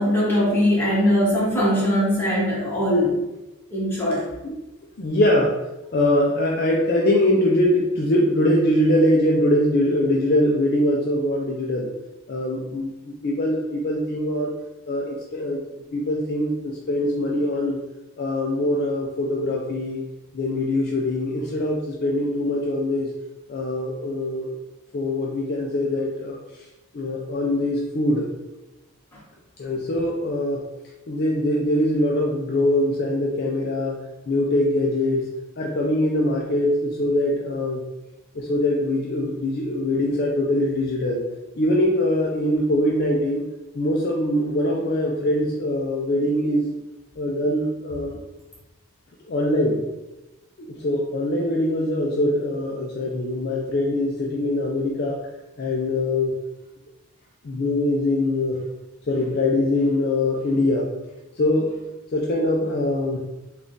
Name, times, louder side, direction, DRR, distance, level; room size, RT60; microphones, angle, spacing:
voice 1, 0.0-3.2 3.7-4.2, equal, 10° left, -8 dB, 1.2 m, -21 dB
voice 2, 5.0-5.5 5.9-11.9 12.3-14.5 14.9-15.6 15.9-17.8 18.2-20.0 20.3-23.1 23.5-24.5 24.9-26.4 26.9-28.3 29.6-30.6 31.1-34.0 34.3-35.2 35.6-37.8 38.3-41.2 41.6-43.4 43.7-46.6 47.2-48.2 49.3-49.8 50.6-55.2 55.6-56.3 57.4-58.6 59.1-60.9 61.4-61.7 62.1-63.2, left 1 dB, 45° left, -1 dB, 0.4 m, -22 dB
3.6 x 2.3 x 3.8 m, 1.0 s
head